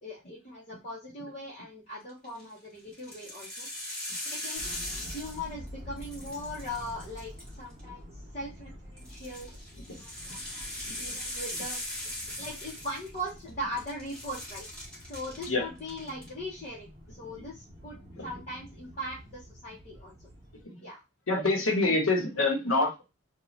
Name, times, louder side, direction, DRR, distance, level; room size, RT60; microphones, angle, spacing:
voice 1, 0.0-3.7 4.2-9.5 10.0-11.8 12.4-14.7 15.0-20.2 20.8-21.0, equal, 35° left, -6 dB, 0.7 m, -40 dB
sound 1, 2.1-2.4 2.9-5.7 6.0-7.8 9.0-13.5 13.8-15.5 15.8-16.3, left 1 dB, 5° left, 1.1 m, -39 dB
sound 2, 4.6-20.6, equal, 40° right, 0.9 m, -48 dB
voice 2, 21.3-23.1, left 2 dB, 70° left, 2 dB, 0.9 m, -27 dB
2.6 x 2.2 x 3.1 m, 0.26 s
head